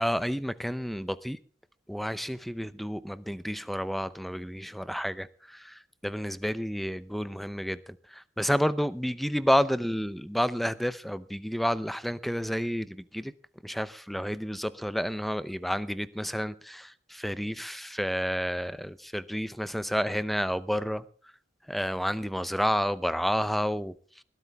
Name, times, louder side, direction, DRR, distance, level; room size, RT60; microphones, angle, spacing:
voice 1, 0.0-1.4 1.9-13.3 13.6-21.0 21.7-24.2, equal, ahead, 0.7 m, -30 dB
21.0 x 15.0 x 3.5 m
head